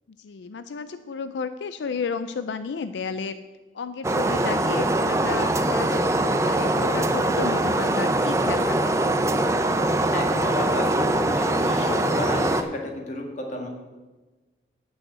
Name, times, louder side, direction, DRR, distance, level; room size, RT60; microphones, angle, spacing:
voice 1, 0.2-3.4 3.7-9.0, left 5 dB, 85° left, 11 dB, 0.4 m, -32 dB
sound 1, 4.0-12.6, right 1 dB, 15° right, 0.5 m, -22 dB
voice 2, 10.1-13.7, left 1 dB, 40° left, 1 dB, 1.7 m, -32 dB
9.0 x 6.3 x 7.5 m, 1.2 s
head